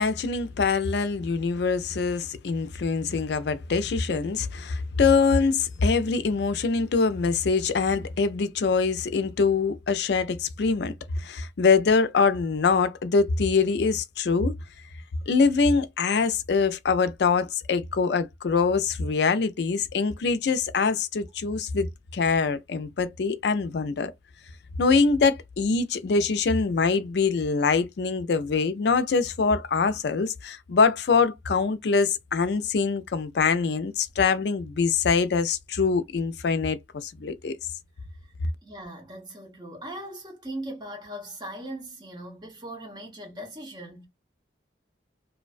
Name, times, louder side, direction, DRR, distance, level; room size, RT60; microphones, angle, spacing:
voice 1, 0.0-14.5 15.3-24.1 24.8-37.6, left 4 dB, 65° left, 0.4 m, -24 dB
voice 2, 38.6-44.1, right 1 dB, 25° right, 0.8 m, -39 dB
2.5 x 2.1 x 2.4 m
head